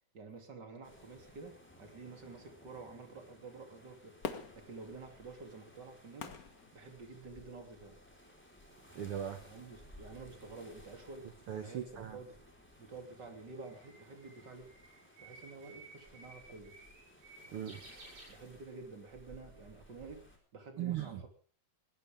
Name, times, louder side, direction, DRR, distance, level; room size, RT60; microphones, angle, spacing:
voice 1, 0.1-6.4 6.7-8.0 9.4-12.4 12.8-14.8 15.2-16.8 18.3-20.2 20.5-21.3, right 3 dB, 30° right, 5 dB, 3.2 m, -50 dB
sound 1, 0.8-20.4, equal, 5° left, 4.1 m, -59 dB
Fireworks, 4.2-7.5 8.1-8.2, left 5 dB, 75° left, 0.8 m, -46 dB
voice 2, 8.7-9.4 11.5-12.2 17.4-17.8 20.8-21.2, right 10 dB, 75° right, 9 dB, 1.3 m, -39 dB
Bird, 12.7-18.9, right 2 dB, 60° right, 9.5 m, -56 dB
21.0 x 17.0 x 3.6 m, 0.38 s
omnidirectional pair, 4.1 m